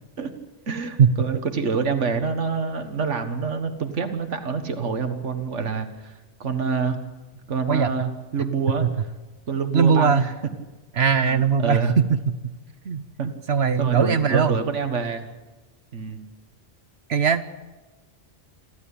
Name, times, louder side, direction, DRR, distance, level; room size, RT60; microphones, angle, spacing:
voice 1, 0.7-7.0 7.5-8.9 9.5-10.3 11.3-11.9 13.2-13.3 13.8-15.3 15.9-16.2, right 5 dB, 80° right, 7 dB, 1.9 m, -27 dB
voice 2, 9.7-10.2 11.0-12.2 12.4-12.5 12.9-13.0 13.5-14.6 17.1-17.5, right 6 dB, 65° right, 12 dB, 1.1 m, -19 dB
28.0 x 12.5 x 8.6 m, 1.2 s
omnidirectional pair, 1.2 m